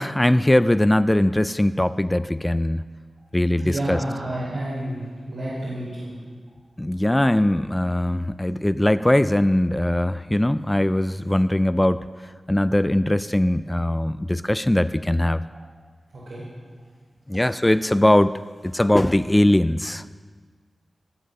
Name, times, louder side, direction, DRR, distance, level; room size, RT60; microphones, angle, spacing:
voice 1, 0.0-2.8 3.3-4.0 6.8-12.0 12.5-15.4 17.3-18.4 18.6-20.0, left 1 dB, 10° left, 13 dB, 0.3 m, -20 dB
voice 2, 3.6-6.2 16.1-16.4, right 1 dB, 80° right, -8 dB, 4.7 m, -30 dB
19.0 x 8.1 x 6.5 m, 1.5 s
wide cardioid pair, 105°, 0 cm